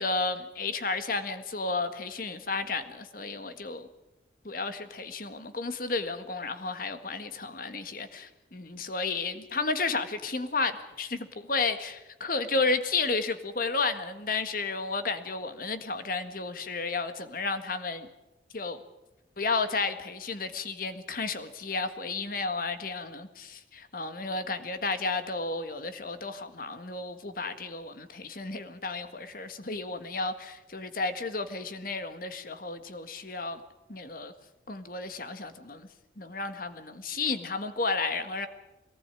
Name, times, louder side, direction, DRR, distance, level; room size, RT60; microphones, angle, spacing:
voice 1, 0.0-3.9 4.4-18.1 18.5-18.8 19.4-33.6 33.9-34.3 34.7-35.9 36.2-38.5, left 3 dB, 50° left, 9 dB, 1.7 m, -32 dB
22.5 x 18.5 x 9.1 m, 0.99 s
head